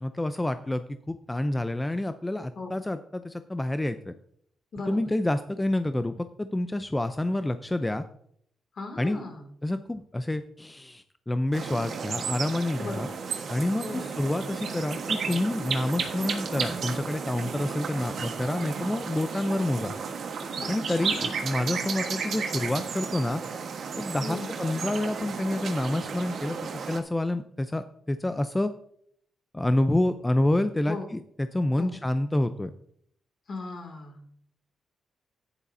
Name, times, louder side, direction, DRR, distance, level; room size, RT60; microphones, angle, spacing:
voice 1, 0.0-4.1 4.9-8.0 9.0-9.2 9.6-13.1 13.5-19.9 20.7-23.4 24.0-26.6 26.9-28.7 29.5-32.7, left 1 dB, 15° left, 10 dB, 0.5 m, -28 dB
voice 2, 8.7-9.5 12.8-13.3 13.8-14.1 20.6-21.5 24.2-24.5 30.9-31.1 31.8-32.0 33.5-34.2, left 3 dB, 60° left, 4 dB, 2.4 m, -38 dB
sound 1, 11.5-27.0, right 5 dB, 70° right, 1.3 m, -33 dB
11.0 x 10.0 x 2.7 m, 0.67 s
supercardioid pair, 60°, 0 cm